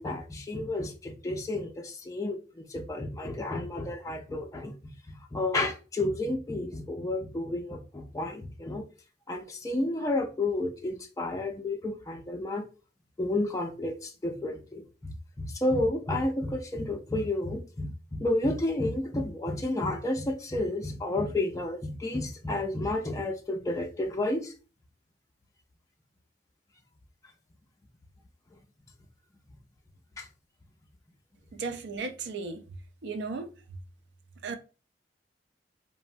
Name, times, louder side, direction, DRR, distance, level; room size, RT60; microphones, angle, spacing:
voice 1, 0.0-4.7 5.3-8.8 9.3-12.6 13.2-24.5 30.2-30.3, left 2 dB, 20° left, 0.4 m, -31 dB
voice 2, 31.5-32.6 33.0-33.5 34.4-34.5, right 4 dB, 70° right, 0.4 m, -35 dB
3.3 x 2.0 x 2.5 m
head